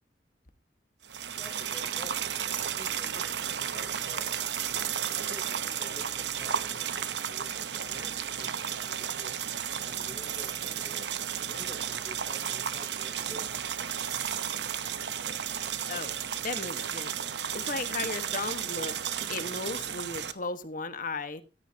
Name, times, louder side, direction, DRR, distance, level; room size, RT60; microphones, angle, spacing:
sound 1, 1.0-20.3, right 9 dB, 75° right, 0.9 m, -33 dB
voice 1, 1.4-4.7 5.1-9.4 9.8-13.9, equal, 15° left, 3.0 m, -50 dB
voice 2, 16.4-17.1 17.5-18.9 19.3-21.4, left 3 dB, 50° left, 1.4 m, -35 dB
15.0 x 13.5 x 2.8 m
head